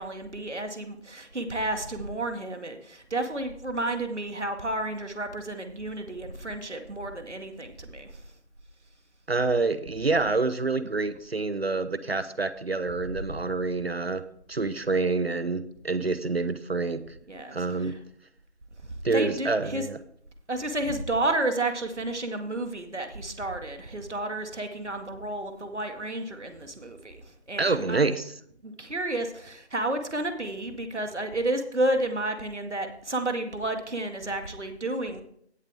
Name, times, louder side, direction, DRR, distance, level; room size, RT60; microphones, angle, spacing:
voice 1, 0.0-8.1 17.3-17.6 19.1-19.8 20.5-27.2 27.5-28.0 28.6-35.2, right 1 dB, 90° right, 6 dB, 2.0 m, -31 dB
voice 2, 9.3-14.2 14.5-17.0 17.5-17.9 19.0-20.0 27.6-28.4, right 3 dB, 65° right, 13 dB, 0.9 m, -27 dB
17.5 x 7.2 x 3.5 m, 0.66 s
figure-of-eight pair, 170°, 34 cm